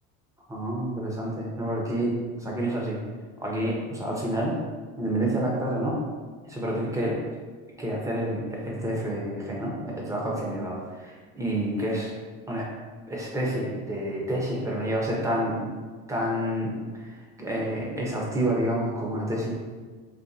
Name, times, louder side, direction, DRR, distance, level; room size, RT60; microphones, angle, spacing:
voice 1, 0.5-3.0 3.4-4.6 5.0-6.0 6.4-7.2 7.8-12.1 12.5-12.7 13.1-15.7 16.1-19.5, right 1 dB, 10° right, -4 dB, 0.9 m, -29 dB
3.8 x 2.5 x 2.8 m, 1.5 s
supercardioid pair, 95°, 31 cm